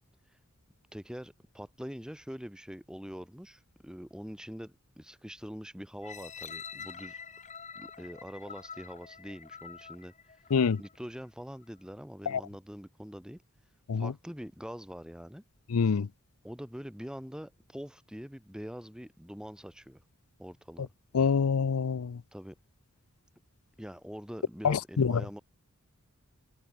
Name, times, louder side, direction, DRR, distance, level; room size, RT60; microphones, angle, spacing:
voice 1, 0.9-7.2 7.7-10.1 10.8-13.4 13.9-15.4 16.4-20.0 20.4-20.9 22.3-22.6 23.8-25.4, equal, 5° right, 2.4 m, -44 dB
sound 1, 6.0-11.0 11.5-11.6, left 6 dB, 35° left, 2.2 m, -46 dB
voice 2, 15.7-16.1 21.1-22.2 24.6-25.1, left 5 dB, 90° left, 0.5 m, -26 dB
head